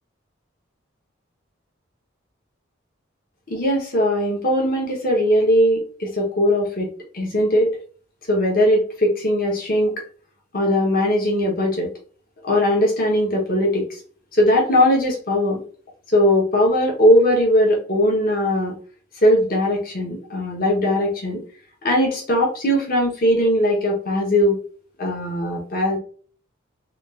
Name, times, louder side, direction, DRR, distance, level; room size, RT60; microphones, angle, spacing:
voice 1, 3.5-6.9 7.1-7.8 8.3-10.0 10.5-11.9 12.4-14.0 14.3-15.6 16.1-18.7 19.2-21.4 21.8-24.6 25.0-26.0, equal, 45° left, -1 dB, 1.2 m, -19 dB
3.6 x 2.5 x 3.7 m, 0.43 s
head